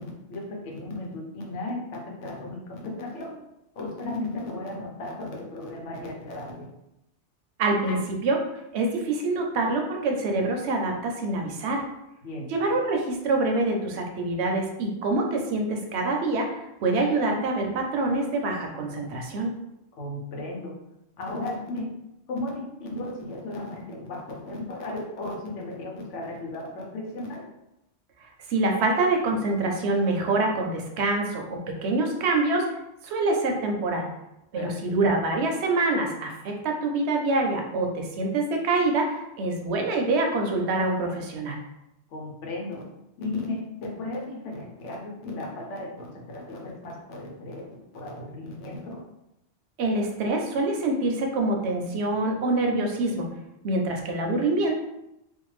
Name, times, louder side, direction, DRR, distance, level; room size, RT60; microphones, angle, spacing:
voice 1, 0.0-3.4 3.7-6.7 7.9-8.0 12.2-12.5 19.9-20.7 21.2-21.9 22.3-27.5 34.5-34.9 42.1-42.9 43.2-49.0, left 2 dB, 90° left, -1 dB, 1.0 m, -35 dB
voice 2, 7.6-8.0 8.2-8.4 8.7-11.8 12.5-16.5 16.8-19.5 28.5-34.1 34.5-41.6 49.8-53.3 53.6-54.7, right 2 dB, 70° right, 2 dB, 0.8 m, -25 dB
2.6 x 2.2 x 3.1 m, 0.87 s
omnidirectional pair, 1.2 m